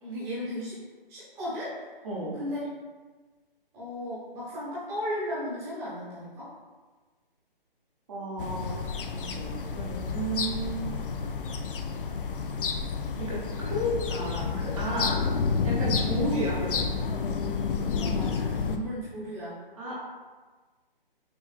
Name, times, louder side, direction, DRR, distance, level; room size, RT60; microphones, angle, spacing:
voice 1, 0.0-0.8 1.1-1.8 2.3-2.7 3.7-6.5 13.6-13.7 18.0-19.6, equal, 10° right, -10 dB, 1.0 m, -35 dB
voice 2, 2.0-2.4 8.1-10.8 13.2-15.2 15.6-16.8 19.8-20.0, right 1 dB, 35° right, -7 dB, 0.9 m, -33 dB
sound 1, 8.4-18.8, left 5 dB, 65° left, 0.5 m, -30 dB
6.2 x 2.6 x 2.4 m, 1.3 s
hypercardioid pair, 155°, 29 cm